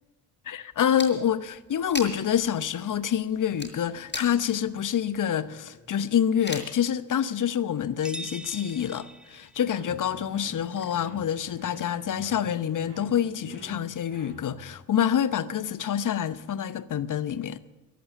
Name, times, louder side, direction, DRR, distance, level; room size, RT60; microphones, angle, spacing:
voice 1, 0.5-17.6, left 9 dB, 40° left, 0.9 m, -27 dB
sound 1, 0.7-6.8 7.2-7.3 7.6-8.1 8.4-9.4 9.7-12.3, left 2 dB, 20° left, 5.7 m, -43 dB
sound 2, 8.0-9.8, right 2 dB, ahead, 0.6 m, -41 dB
sound 3, 9.6-14.7, equal, 65° right, 4.8 m, -48 dB
15.0 x 11.5 x 7.7 m
hypercardioid pair, 40°, 46 cm